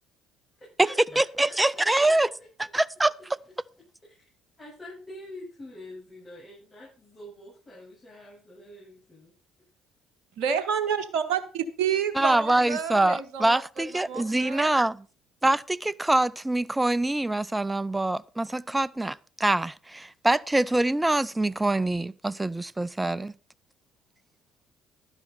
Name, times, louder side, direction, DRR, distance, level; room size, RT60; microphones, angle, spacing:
voice 1, 0.6-2.3 4.0-4.2 4.6-9.4, left 1 dB, 20° left, 7.7 m, -46 dB
voice 2, 1.2-2.3 2.7-3.1 12.2-15.1 15.4-23.3, right 2 dB, 10° right, 0.4 m, -24 dB
voice 3, 10.4-14.7, right 7 dB, 65° right, 1.0 m, -29 dB
12.0 x 9.8 x 4.1 m
hypercardioid pair, 55°, 0 cm